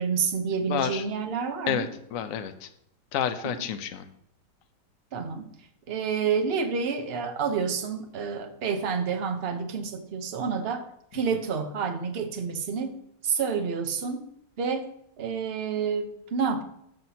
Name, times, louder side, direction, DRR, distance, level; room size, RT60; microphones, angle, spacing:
voice 1, 0.0-1.9 3.4-3.6 5.1-5.5 5.9-10.8 11.1-13.0 13.2-14.2 14.6-14.8 15.2-16.6, right 6 dB, 45° right, 6 dB, 0.9 m, -29 dB
voice 2, 0.7-1.0 1.7-2.7 3.1-4.1, left 9 dB, 60° left, 9 dB, 0.9 m, -29 dB
13.0 x 6.0 x 2.8 m, 0.76 s
omnidirectional pair, 1.9 m